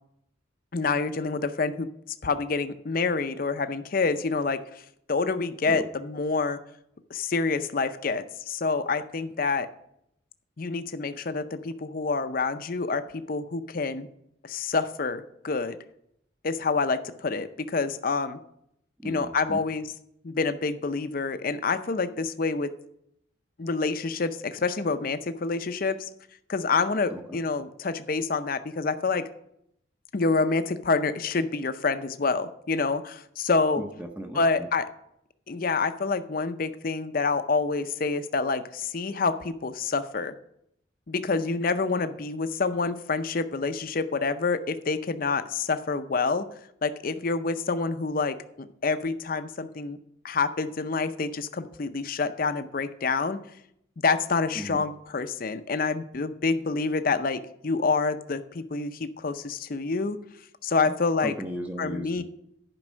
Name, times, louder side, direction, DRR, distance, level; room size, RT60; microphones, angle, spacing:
voice 1, 0.7-1.9 2.2-4.6 5.1-6.6 7.1-9.7 10.6-14.1 14.4-15.8 16.4-18.4 19.0-19.8 20.2-22.7 23.6-26.1 26.5-29.2 30.1-33.8 34.3-34.9 35.5-40.3 41.1-46.5 46.8-50.0 50.2-53.4 54.0-60.2 60.6-61.3 61.8-62.2, left 4 dB, 45° left, 11 dB, 0.5 m, -27 dB
voice 2, 19.0-19.6 27.1-27.4 33.8-34.7 54.5-54.8 60.8-60.9 61.2-62.2, equal, 5° right, 3 dB, 0.6 m, -36 dB
10.5 x 5.3 x 6.2 m, 0.76 s
head